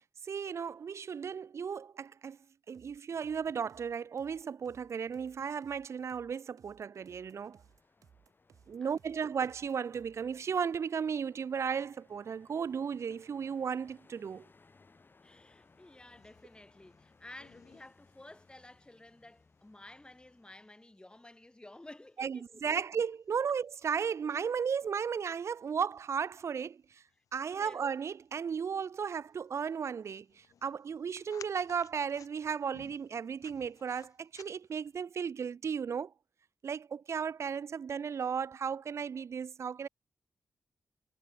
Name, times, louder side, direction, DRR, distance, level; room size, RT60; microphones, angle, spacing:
voice 1, 0.2-2.4 2.7-7.6 8.7-14.4 22.2-27.0 27.3-36.1 36.6-39.9, right 6 dB, 55° right, 0.4 m, -35 dB
sound 1, 2.7-10.4, right 7 dB, 80° right, 2.2 m, -64 dB
sound 2, 7.0-20.7, left 3 dB, 40° left, 3.1 m, -65 dB
voice 2, 15.2-22.6 27.4-27.8, left 1 dB, 15° left, 4.8 m, -53 dB
sound 3, 15.6-35.0, left 8 dB, 85° left, 3.1 m, -62 dB
cardioid pair, 75°, 6 cm